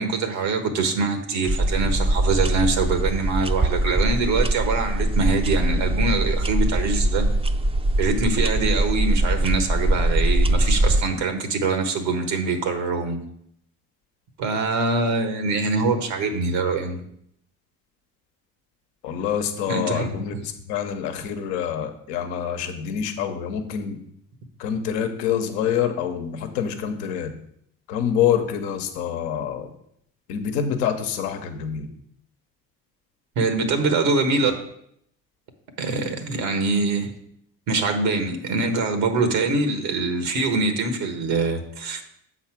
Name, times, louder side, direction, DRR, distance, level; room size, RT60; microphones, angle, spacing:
voice 1, 0.0-7.3 8.0-13.2 14.4-17.0 19.7-20.4 33.4-34.5 35.8-37.1 37.7-42.0, right 3 dB, 85° right, 7 dB, 1.3 m, -24 dB
sound 1, 1.5-11.0, right 1 dB, 15° right, 0.4 m, -22 dB
voice 2, 19.0-24.0 24.6-27.3 27.9-29.7 30.3-31.9, left 8 dB, 85° left, 6 dB, 0.9 m, -26 dB
7.3 x 4.2 x 5.9 m, 0.71 s
supercardioid pair, 65°, 38 cm